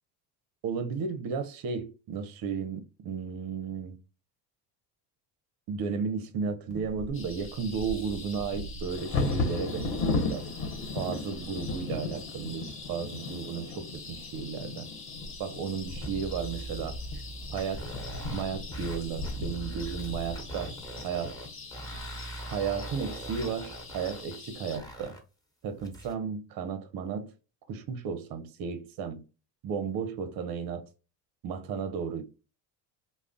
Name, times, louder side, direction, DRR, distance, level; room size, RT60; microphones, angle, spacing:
voice 1, 0.6-4.0 5.7-10.5 10.9-14.9 15.4-17.2 17.5-17.9 18.3-20.7 21.0-21.4 22.5-25.2 25.6-27.3 27.7-29.2 29.6-30.9 31.4-32.2, right 6 dB, 45° right, 0.6 m, -34 dB
Bird vocalization bird call bird song / Wind / Thunder, 6.7-22.6 23.2-23.3 23.7-24.1 24.5-25.0, left 3 dB, 55° left, 1.1 m, -36 dB
sound 1, 7.1-24.8, left 4 dB, 25° left, 0.9 m, -46 dB
sound 2, 16.0-18.4 18.7-19.0 19.2-21.4 21.7-24.3 24.7-25.2 25.8-26.1, right 2 dB, 10° left, 1.3 m, -41 dB
2.4 x 2.0 x 3.6 m
hypercardioid pair, 55°, 50 cm